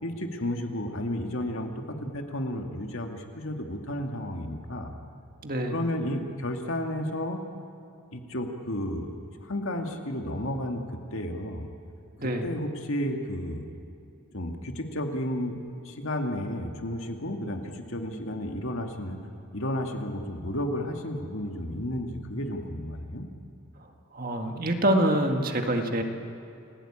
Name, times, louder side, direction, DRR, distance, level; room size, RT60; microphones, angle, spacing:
voice 1, 0.0-4.9 5.7-7.4 8.1-9.1 9.4-11.7 12.2-13.6 14.3-15.6 15.8-19.2 19.5-23.3, left 1 dB, 70° left, 3 dB, 2.3 m, -32 dB
voice 2, 5.4-5.8 12.2-12.5 24.1-26.0, right 1 dB, 40° right, 4 dB, 2.0 m, -25 dB
30.0 x 17.0 x 8.9 m, 2.6 s
head